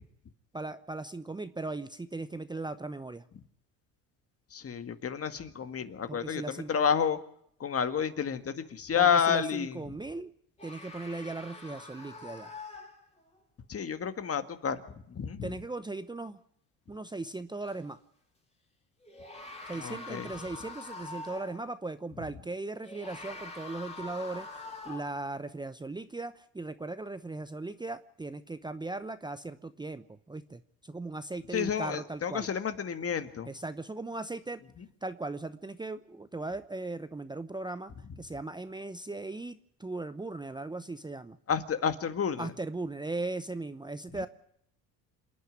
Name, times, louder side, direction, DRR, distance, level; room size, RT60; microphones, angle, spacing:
voice 1, 0.5-3.2 6.1-6.8 9.0-10.3 10.6-12.5 15.4-16.4 16.9-18.0 19.7-24.5 24.8-32.5 33.4-34.6 35.0-37.9 38.2-41.4 42.4-44.3, right 2 dB, 10° right, 11 dB, 0.8 m, -38 dB
voice 2, 4.5-7.2 7.6-9.8 13.7-14.8 15.1-15.4 19.8-20.3 31.5-33.5 41.5-42.5, left 7 dB, 35° left, 9 dB, 1.9 m, -30 dB
sound 1, 10.6-13.4 17.6-17.7 19.0-21.7 22.8-25.3, left 3 dB, 15° left, 4.0 m, -45 dB
27.5 x 9.6 x 9.9 m, 0.71 s
supercardioid pair, 95°, 38 cm